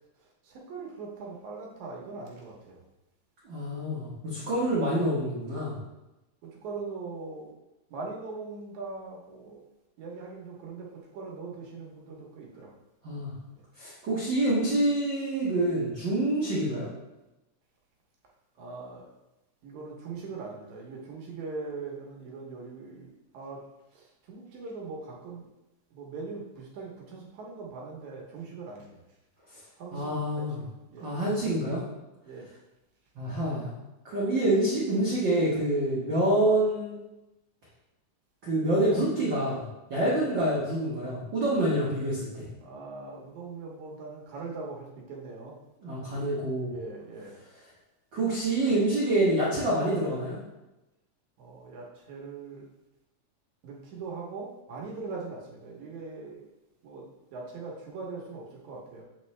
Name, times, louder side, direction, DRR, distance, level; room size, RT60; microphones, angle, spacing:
voice 1, 0.4-2.8 6.4-7.5 7.9-9.6 10.0-12.7 16.7-16.8 18.6-19.1 19.6-23.6 23.9-25.5 25.9-29.0 29.8-30.5 30.9-31.1 32.2-32.5 40.2-40.4 42.6-45.5 46.1-46.3 46.7-47.4 51.4-52.7 53.6-56.5 56.8-57.0 57.3-59.0, right 4 dB, 70° right, -2 dB, 2.2 m, -41 dB
voice 2, 3.4-5.8 13.0-13.3 13.8-16.9 29.9-30.6 31.0-31.8 33.1-33.7 34.0-37.0 38.4-42.5 45.8-46.7 48.1-50.4, right 1 dB, 55° right, -7 dB, 1.3 m, -27 dB
8.4 x 3.8 x 3.2 m, 0.97 s
omnidirectional pair, 3.7 m